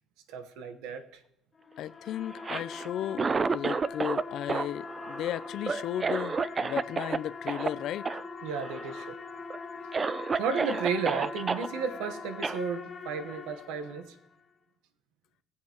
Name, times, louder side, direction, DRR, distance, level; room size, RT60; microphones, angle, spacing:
voice 1, 0.3-1.2 8.4-9.2 10.4-14.1, right 5 dB, 85° right, 1.0 m, -33 dB
sound 1, 1.6-14.3, left 4 dB, 30° left, 1.0 m, -42 dB
voice 2, 1.8-8.1, left 11 dB, 60° left, 0.4 m, -35 dB
Cough, 2.3-4.2 4.5-7.2 7.5-7.7 8.0-8.2 8.5-9.0 9.5-9.6 9.9-11.7 12.4-12.6, right 4 dB, 25° right, 0.4 m, -30 dB
20.0 x 7.6 x 2.9 m
cardioid pair, 120°, 0 cm